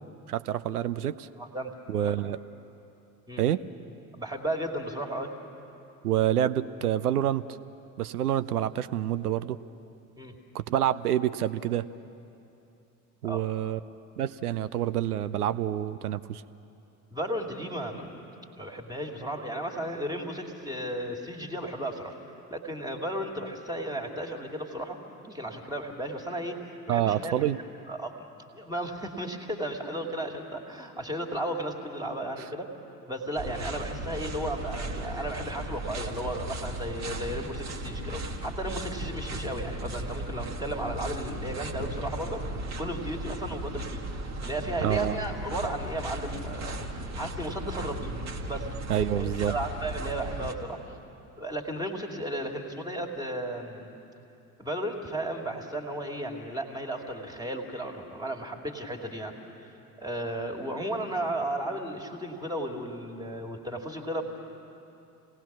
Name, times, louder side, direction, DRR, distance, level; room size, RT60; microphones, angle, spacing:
voice 1, 0.3-1.3 1.9-2.4 3.4-3.6 6.0-7.5 8.0-9.6 10.5-11.9 13.2-13.8 14.2-16.4 26.9-27.6 44.8-45.2 48.9-49.5, right 11 dB, 75° right, 15 dB, 0.6 m, -27 dB
voice 2, 1.4-1.8 2.0-2.3 3.3-3.4 4.1-5.3 10.2-10.3 13.2-13.4 17.1-18.3 18.6-22.2 22.5-25.0 25.2-28.3 28.5-32.7 33.1-44.1 44.4-48.1 48.5-50.8 51.4-54.0 54.6-59.4 60.0-64.2, right 1 dB, 10° right, 2 dB, 2.3 m, -34 dB
sound 1, 33.4-50.5, right 1 dB, 35° right, 1.7 m, -36 dB
27.0 x 18.5 x 6.0 m, 2.8 s
figure-of-eight pair, 65°, 45 cm